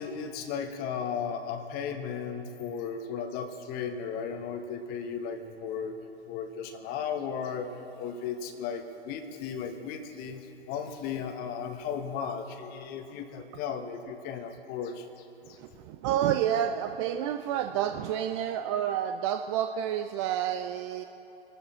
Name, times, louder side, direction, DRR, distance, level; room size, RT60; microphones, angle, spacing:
voice 1, 0.0-6.0 6.3-15.6, left 7 dB, 30° left, 7 dB, 1.2 m, -35 dB
voice 2, 15.6-21.0, right 10 dB, 30° right, 7 dB, 0.5 m, -29 dB
25.0 x 12.5 x 4.4 m, 2.9 s
figure-of-eight pair, 110°, 32 cm